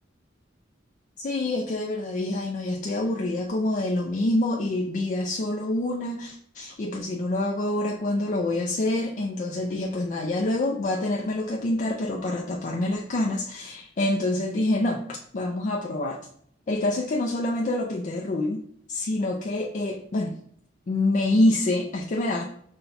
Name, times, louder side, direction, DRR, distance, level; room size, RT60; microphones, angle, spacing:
voice 1, 1.2-15.0 15.3-16.2 16.7-18.6 18.9-20.4 20.9-22.4, left 2 dB, 40° left, -1 dB, 0.4 m, -26 dB
5.6 x 2.2 x 3.9 m, 0.65 s
head